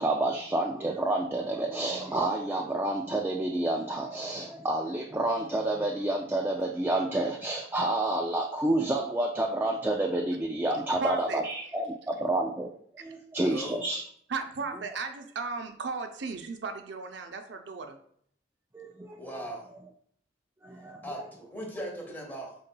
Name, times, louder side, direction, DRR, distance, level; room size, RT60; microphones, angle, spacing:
voice 1, 0.0-12.7 13.0-14.0 18.7-19.4 20.6-21.0, right 1 dB, 10° right, 0 dB, 0.3 m, -29 dB
voice 2, 10.7-11.4 14.3-18.0, right 4 dB, 85° right, 6 dB, 0.6 m, -35 dB
voice 3, 13.4-13.8 19.2-19.7 21.0-22.6, equal, 10° left, -1 dB, 1.0 m, -38 dB
5.3 x 3.8 x 2.2 m, 0.63 s
head